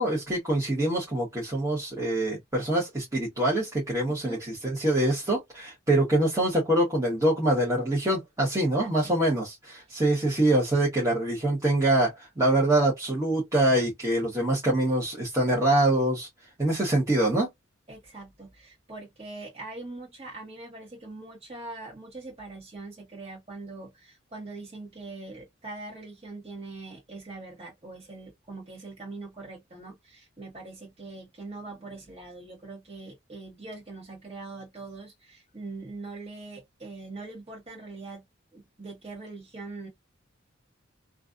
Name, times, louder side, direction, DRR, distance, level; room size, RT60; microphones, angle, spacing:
voice 1, 0.0-16.3 16.6-17.5, right 1 dB, 15° right, 1.3 m, -25 dB
voice 2, 8.8-9.1 17.9-38.2 38.5-39.9, right 3 dB, 30° right, 1.5 m, -42 dB
3.2 x 2.4 x 2.5 m
head